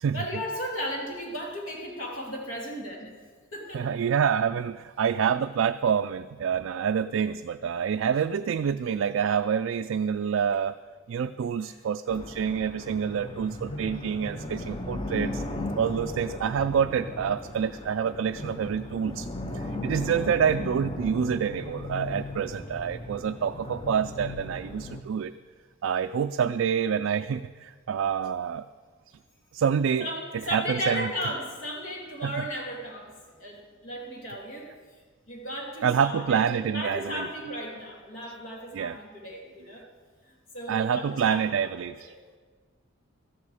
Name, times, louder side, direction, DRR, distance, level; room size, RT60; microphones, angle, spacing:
voice 1, 0.1-3.1 3.5-3.9 11.7-11.8 30.0-34.7 35.3-36.4 36.7-39.8 40.5-42.1, equal, 70° left, -2 dB, 2.9 m, -35 dB
voice 2, 3.7-10.8 11.1-15.4 15.8-19.3 19.5-25.3 25.8-28.7 29.5-30.1 30.5-31.1 32.2-32.4 35.8-37.3 38.7-39.0 40.7-42.1, right 7 dB, 75° right, 8 dB, 0.3 m, -27 dB
sound 1, 12.1-25.0, left 1 dB, 25° left, 0.7 m, -37 dB
13.5 x 11.0 x 4.9 m, 1.5 s
head